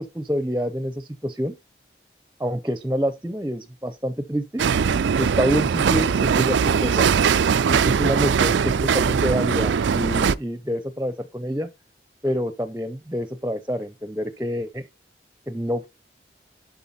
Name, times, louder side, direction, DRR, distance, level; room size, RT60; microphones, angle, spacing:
voice 1, 0.0-1.6 2.4-4.6 5.2-7.1 7.7-11.7 12.2-14.8 15.5-15.9, equal, 10° right, 0.6 m, -27 dB
sound 1, 4.6-10.4, right 6 dB, 90° right, 0.4 m, -20 dB
11.0 x 3.9 x 4.2 m
head